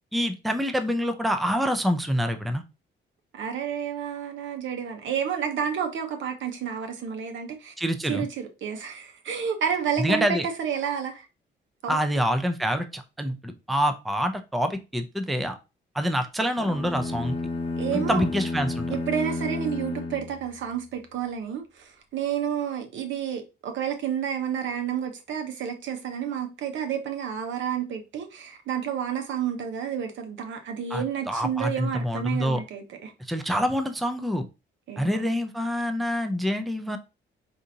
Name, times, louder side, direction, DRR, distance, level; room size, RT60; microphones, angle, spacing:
voice 1, 0.1-2.6 7.8-8.2 10.0-10.5 11.9-15.6 15.9-17.4 17.9-19.0 30.9-32.6 33.2-34.5 35.0-37.0, equal, ahead, 0.4 m, -26 dB
voice 2, 3.3-7.7 8.0-11.3 11.8-12.0 17.8-18.2 18.9-33.1 34.9-35.3, right 8 dB, 70° right, 0.9 m, -30 dB
sound 1, 16.6-20.9, left 2 dB, 25° left, 0.8 m, -32 dB
4.8 x 2.6 x 2.7 m
cardioid pair, 90°, 20 cm